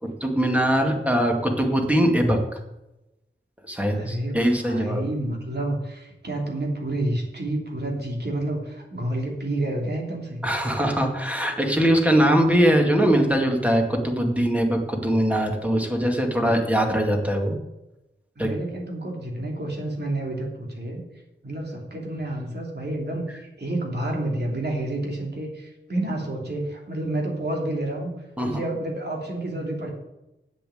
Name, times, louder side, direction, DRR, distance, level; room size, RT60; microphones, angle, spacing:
voice 1, 0.0-2.4 3.7-5.0 10.4-17.6 18.4-18.5 28.4-28.7, equal, 5° right, 2 dB, 2.1 m, -21 dB
voice 2, 3.9-10.4 18.4-21.0 21.4-28.1 28.4-29.9, right 1 dB, 55° right, 0 dB, 3.0 m, -29 dB
8.7 x 7.6 x 7.8 m, 0.94 s
wide cardioid pair, 80°, 20 cm